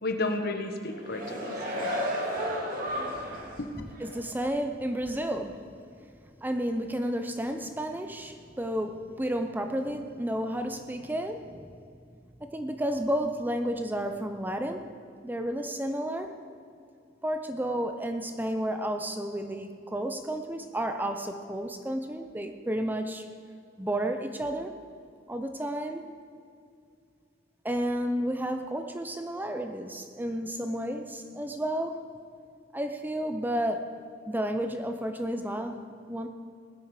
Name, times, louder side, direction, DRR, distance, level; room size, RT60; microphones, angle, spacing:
voice 1, 0.0-1.9 3.6-3.7, left 2 dB, 55° left, 5 dB, 1.4 m, -32 dB
sound 1, 0.8-3.6 4.0-4.1, equal, 45° right, 2.4 m, -32 dB
voice 2, 4.0-5.7 6.4-11.7 12.4-14.9 15.2-16.3 17.2-23.2 23.8-24.8 25.3-26.1 27.6-32.0 32.7-33.9 34.3-36.3, right 1 dB, 10° right, 7 dB, 0.6 m, -31 dB
19.0 x 10.0 x 5.0 m, 2.4 s
head